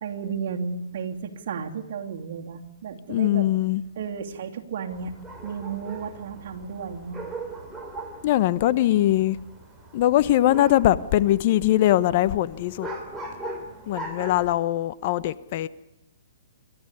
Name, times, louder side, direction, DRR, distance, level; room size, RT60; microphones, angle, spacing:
voice 1, 0.0-3.5 4.0-5.1 5.4-7.2, right 6 dB, 60° right, 2.9 m, -33 dB
voice 2, 3.1-3.8 8.2-9.4 9.9-12.9 13.9-15.7, left 13 dB, 45° left, 0.9 m, -21 dB
sound 1, 4.9-14.5, right 2 dB, 5° right, 3.8 m, -40 dB
27.5 x 13.0 x 9.9 m
hypercardioid pair, 145°, 0 cm